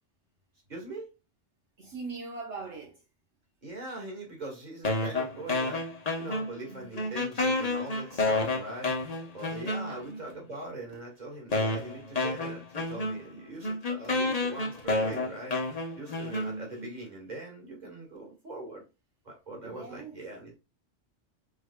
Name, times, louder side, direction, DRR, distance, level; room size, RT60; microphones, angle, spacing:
voice 1, 0.7-1.1 3.6-5.8 6.2-8.9 9.3-15.6 16.0-18.8 19.2-20.6, right 2 dB, 35° right, 2.0 m, -41 dB
voice 2, 1.8-3.0 6.7-7.2 9.9-10.3 19.6-20.2, right 4 dB, 65° right, 1.3 m, -42 dB
sound 1, 4.8-6.7 7.0-10.2 10.9-11.0 11.5-16.9, left 2 dB, 35° left, 1.0 m, -30 dB
5.0 x 3.8 x 2.2 m
omnidirectional pair, 1.3 m